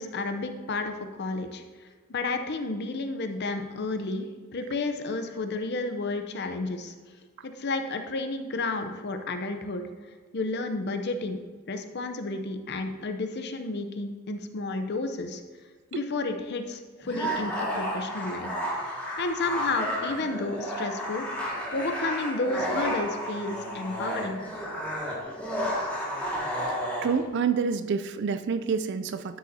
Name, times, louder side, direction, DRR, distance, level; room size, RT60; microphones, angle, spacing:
voice 1, 0.0-1.6 2.1-6.9 7.4-9.8 10.3-11.4 11.7-15.4 15.9-18.5 18.8-21.2 21.7-24.4, left 3 dB, 50° left, 7 dB, 0.6 m, -31 dB
sound 1, 17.0-27.2, equal, 5° left, 1.9 m, -32 dB
voice 2, 27.0-29.4, right 5 dB, 50° right, 11 dB, 0.3 m, -28 dB
12.0 x 6.5 x 2.7 m, 1.4 s
head